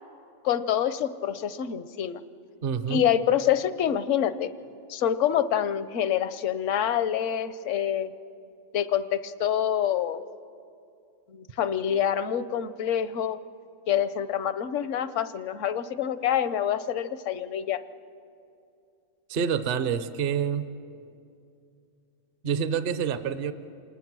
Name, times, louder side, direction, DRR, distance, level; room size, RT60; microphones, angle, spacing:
voice 1, 0.4-2.2 2.9-4.5 4.9-8.1 8.7-10.2 11.3-13.4 13.9-17.8, left 9 dB, 75° left, 14 dB, 1.0 m, -26 dB
voice 2, 2.6-3.0 19.3-20.7 22.4-23.5, right 7 dB, 50° right, 11 dB, 0.8 m, -27 dB
27.5 x 19.5 x 6.1 m, 2.5 s
omnidirectional pair, 1.3 m